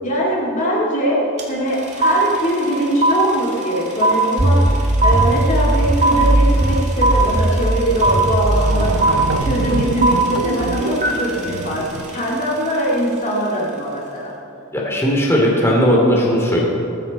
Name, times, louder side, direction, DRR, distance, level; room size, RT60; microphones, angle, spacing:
voice 1, 0.0-9.1 9.4-14.3, equal, 35° left, -4 dB, 2.4 m, -22 dB
sound 1, 1.4-1.5 1.7-12.8, right 2 dB, 30° right, 2.2 m, -20 dB
sound 2, 4.4-10.3, right 1 dB, 15° right, 0.3 m, -19 dB
sound 3, 8.1-8.2 8.4-12.2, right 3 dB, 85° right, 0.8 m, -25 dB
voice 2, 14.7-16.6, equal, 10° left, -3 dB, 2.6 m, -16 dB
20.0 x 14.5 x 4.2 m, 2.8 s
head